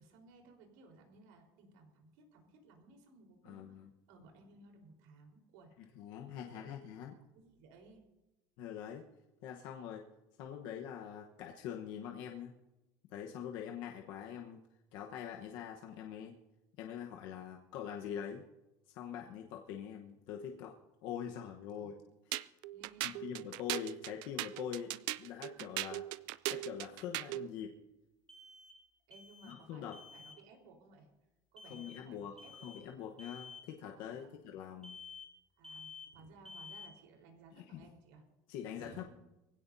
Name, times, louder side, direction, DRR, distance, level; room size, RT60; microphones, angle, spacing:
voice 1, 0.0-5.7 6.5-6.7 7.1-8.0 21.7-21.9 22.7-23.1 29.1-31.1 31.5-33.0 34.1-34.4 35.6-38.2 38.8-39.0, right 3 dB, 85° right, 2 dB, 4.1 m, -59 dB
voice 2, 3.4-3.9 6.0-7.2 8.6-9.1 9.4-10.0 10.4-12.5 13.1-14.6 14.9-16.3 16.8-18.5 18.9-20.8 21.0-21.9 23.0-24.9 25.2-26.1 26.5-27.8 29.4-30.0 31.7-32.4 32.6-35.0 37.5-37.9 38.5-39.0, left 9 dB, 55° left, 2 dB, 1.1 m, -44 dB
sound 1, 22.3-27.5, right 17 dB, 55° right, 0.4 m, -39 dB
sound 2, 25.0-25.1 28.3-28.9 29.1-29.7 29.9-30.4 31.6-32.1 32.4-32.9 33.2-33.7 34.8-35.4 35.6-36.2 36.4-37.0, left 5 dB, 5° left, 1.3 m, -51 dB
23.0 x 16.5 x 2.7 m, 1.0 s
cardioid pair, 175°, 9 cm